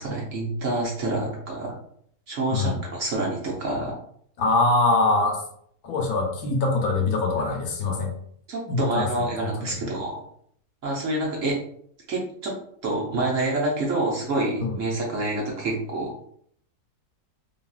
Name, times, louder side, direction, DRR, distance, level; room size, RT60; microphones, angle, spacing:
voice 1, 0.0-1.7 2.3-3.9 8.5-10.1 10.8-11.6 12.1-12.5 12.8-16.2, right 2 dB, 60° right, -3 dB, 1.0 m, -27 dB
voice 2, 4.4-5.4 5.8-8.1 8.7-10.0 14.6-14.8, left 3 dB, 75° left, 2 dB, 1.2 m, -24 dB
2.8 x 2.7 x 2.3 m, 0.65 s
omnidirectional pair, 1.7 m